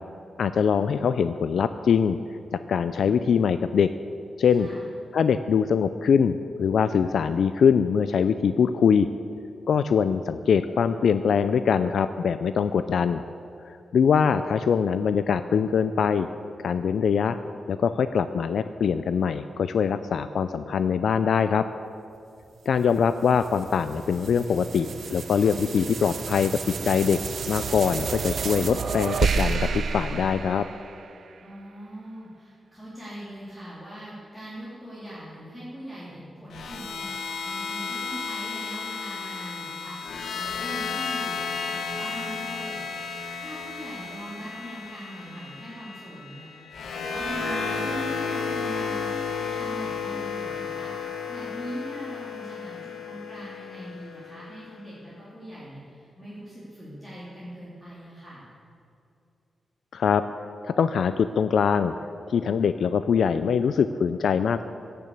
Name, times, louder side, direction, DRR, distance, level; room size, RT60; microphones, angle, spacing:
voice 1, 0.4-2.2 2.5-3.9 4.4-4.7 5.1-9.1 9.7-13.2 13.6-16.3 16.6-17.4 17.7-21.6 22.7-26.5 26.8-27.2 27.5-30.7 59.9-60.2 60.6-61.9 62.3-64.7, left 6 dB, 70° left, 11 dB, 0.4 m, -23 dB
voice 2, 4.5-4.9 31.4-43.1 43.4-58.5, equal, 10° left, -10 dB, 2.9 m, -41 dB
sound 1, 22.8-31.4, right 5 dB, 55° right, 0.5 m, -31 dB
sound 2, 36.5-54.7, left 5 dB, 90° left, 1.4 m, -33 dB
15.0 x 6.9 x 8.4 m, 2.6 s
wide cardioid pair, 165°, 0 cm